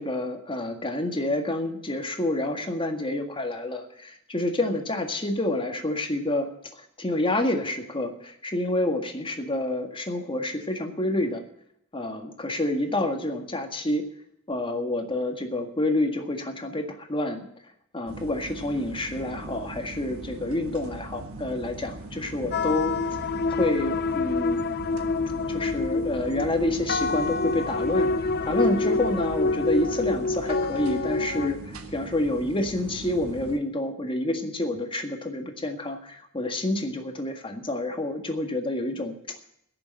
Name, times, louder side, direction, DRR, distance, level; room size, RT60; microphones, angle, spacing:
voice 1, 0.0-6.5 6.8-11.4 11.9-14.1 14.5-17.5 17.9-22.9 23.5-24.7 25.5-39.4, left 1 dB, 25° left, 5 dB, 1.8 m, -28 dB
sound 1, 18.1-33.6, right 2 dB, 75° right, 1.5 m, -40 dB
sound 2, 22.5-31.5, left 3 dB, 50° left, 0.7 m, -27 dB
16.5 x 6.9 x 8.8 m, 0.75 s
head